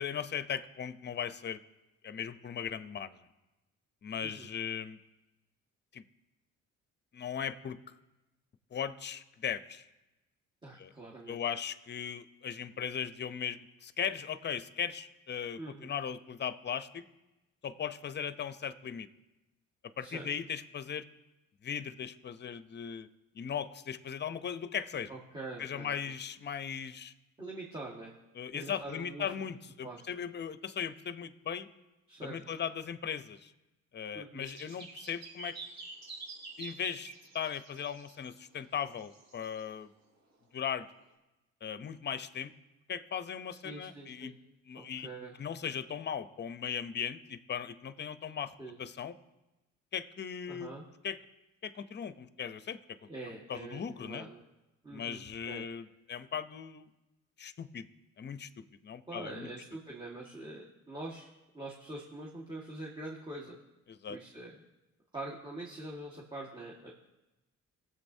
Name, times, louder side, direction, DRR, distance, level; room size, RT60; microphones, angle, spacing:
voice 1, 0.0-1.6 2.0-3.2 4.0-5.0 5.9-6.0 7.1-7.8 8.7-9.8 10.8-10.9 11.3-17.0 17.6-19.1 20.0-21.1 21.6-23.1 23.3-25.1 25.6-27.1 28.4-31.7 32.2-33.5 33.9-35.6 36.6-39.9 40.5-40.9 41.6-42.5 42.9-44.3 44.7-45.1 45.4-48.5 48.8-49.1 49.9-50.7 51.0-51.2 51.6-52.8 53.5-54.3 54.9-56.9 57.4-57.9 58.2-59.5 63.9-64.2, left 8 dB, 35° left, 13 dB, 0.6 m, -38 dB
voice 2, 10.6-11.4 15.6-15.9 20.0-20.3 25.1-25.9 27.4-28.1 28.5-29.5 29.8-30.0 32.1-32.5 34.1-34.5 43.6-44.3 44.7-45.3 48.6-48.8 50.5-50.8 53.1-54.4 54.8-55.6 59.1-61.3 61.5-63.6 64.1-64.6 65.1-66.9, right 2 dB, 15° right, -5 dB, 1.6 m, -44 dB
sound 1, 34.4-38.4 38.9-39.6, right 3 dB, 60° right, 4.0 m, -48 dB
18.5 x 7.6 x 2.7 m, 1.0 s
cardioid pair, 90°, 30 cm